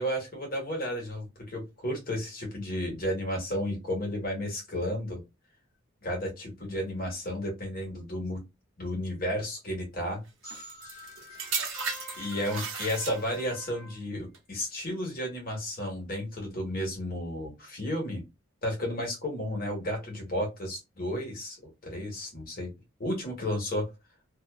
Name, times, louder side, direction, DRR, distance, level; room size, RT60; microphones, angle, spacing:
voice 1, 0.0-5.2 6.0-8.4 8.8-10.2 12.2-18.2 18.6-22.7 23.0-23.9, equal, 45° left, 1 dB, 1.1 m, -33 dB
sound 1, 10.4-14.1, left 2 dB, 15° left, 1.0 m, -51 dB
sound 2, 10.5-13.6 14.3-14.6, right 5 dB, 75° right, 0.8 m, -36 dB
Trumpet, 11.8-14.0, left 4 dB, 70° left, 0.7 m, -48 dB
2.6 x 2.3 x 2.3 m, 0.24 s
head